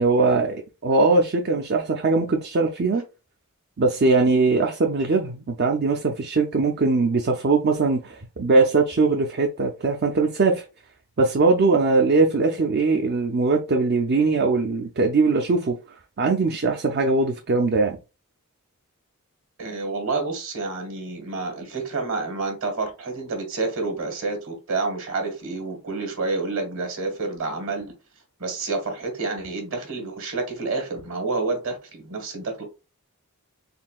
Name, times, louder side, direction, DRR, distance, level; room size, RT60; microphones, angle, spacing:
voice 1, 0.0-3.0 3.8-10.6 11.2-15.8 16.2-18.0, right 3 dB, 45° right, 0.5 m, -21 dB
voice 2, 19.6-27.9 28.4-32.6, right 3 dB, 65° right, 1.8 m, -29 dB
4.3 x 3.7 x 2.4 m
head